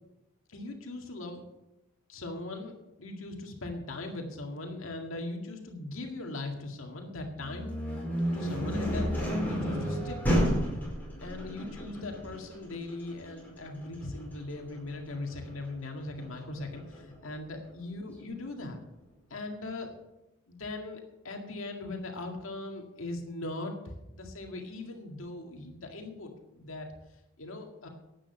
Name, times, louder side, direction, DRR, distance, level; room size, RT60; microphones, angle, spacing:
voice 1, 0.5-1.4 2.1-7.8 8.3-10.5 11.2-18.8 19.3-19.9 20.5-26.9 27.4-27.9, left 2 dB, 75° left, 2 dB, 2.0 m, -39 dB
sound 1, 7.4-17.1, equal, 10° left, 5.0 m, -32 dB
11.0 x 8.9 x 7.0 m, 0.91 s
head